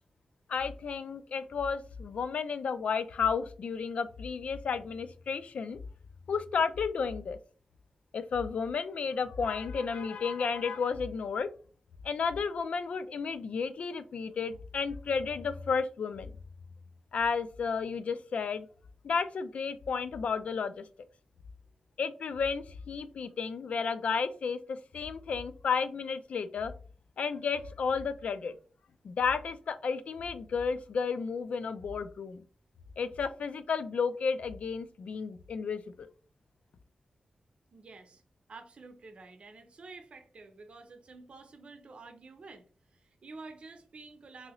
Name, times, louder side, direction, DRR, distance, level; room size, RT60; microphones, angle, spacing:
voice 1, 0.5-5.8 6.3-7.4 8.1-11.5 12.0-16.3 17.1-18.7 19.0-20.8 22.0-26.7 27.2-28.5 29.0-32.4 33.0-36.1, left 5 dB, 80° left, 12 dB, 0.3 m, -32 dB
voice 2, 37.7-38.2 38.5-44.5, right 3 dB, 60° right, 6 dB, 0.6 m, -50 dB
2.7 x 2.6 x 3.0 m, 0.40 s
cardioid pair, 75°, 2 cm